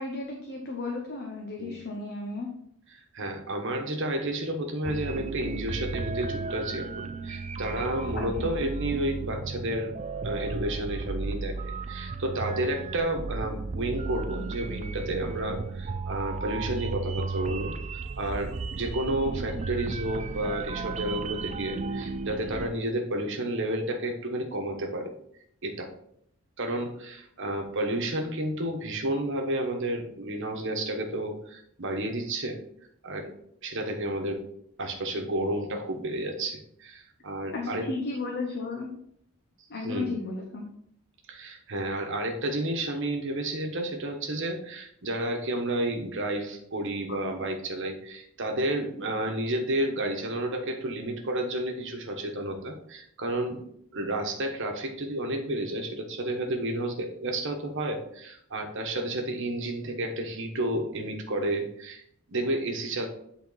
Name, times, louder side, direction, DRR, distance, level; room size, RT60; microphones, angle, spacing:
voice 1, 0.0-2.5 8.1-8.5 37.5-38.9 39.7-40.7 47.1-47.2, left 3 dB, 50° left, 1 dB, 1.0 m, -34 dB
voice 2, 2.9-9.9 10.2-17.8 18.2-25.1 25.6-25.9 26.6-32.6 33.0-33.3 33.6-34.4 34.8-37.9 39.8-40.1 41.3-53.6 53.9-62.0 62.3-63.1, right 1 dB, 60° right, 3 dB, 1.2 m, -31 dB
sound 1, 4.8-22.7, right 4 dB, 35° right, 0.4 m, -34 dB
8.4 x 3.9 x 4.1 m, 0.70 s
head